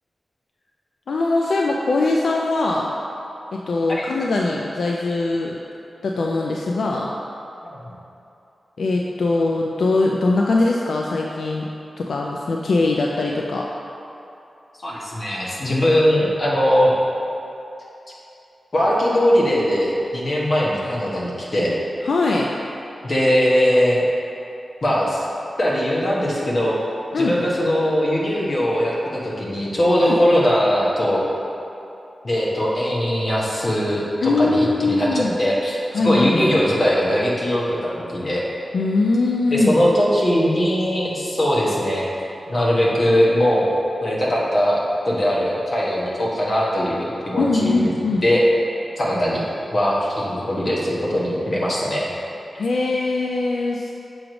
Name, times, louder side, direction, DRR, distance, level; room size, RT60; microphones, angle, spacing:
voice 1, 1.1-2.9 3.5-5.6 6.0-7.1 8.8-11.7 12.0-13.7 22.0-22.5 27.1-27.3 30.0-30.2 34.2-35.4 35.9-36.3 38.7-39.8 47.4-48.2 52.6-53.9, left 3 dB, 80° left, -1 dB, 0.3 m, -21 dB
voice 2, 14.8-16.9 18.7-21.8 23.0-24.0 24.8-25.2 25.6-26.8 27.2-31.2 32.2-38.4 39.5-42.1 42.5-43.8 44.0-47.9 48.2-48.4 49.0-49.4 49.7-52.0, equal, 45° left, -5 dB, 1.1 m, -20 dB
6.0 x 3.1 x 5.0 m, 2.8 s
wide cardioid pair, 150°, 0 cm